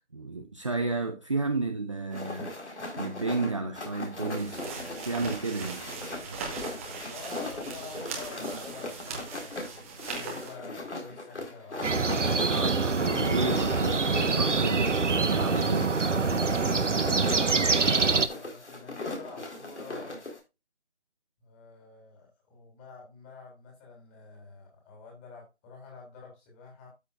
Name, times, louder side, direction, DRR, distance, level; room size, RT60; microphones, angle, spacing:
voice 1, 0.1-2.5 3.0-5.8 12.4-16.0, right 3 dB, 25° right, 0.7 m, -32 dB
sound 1, 2.1-20.4, left 2 dB, 70° left, 4.3 m, -39 dB
sound 2, 4.2-10.5, right 4 dB, 10° right, 1.3 m, -40 dB
voice 2, 7.1-11.8 17.6-20.2 21.4-26.9, left 4 dB, 15° left, 3.4 m, -48 dB
sound 3, 11.8-18.3, right 4 dB, 90° right, 1.2 m, -25 dB
13.0 x 6.7 x 2.4 m
figure-of-eight pair, 160°, 35 cm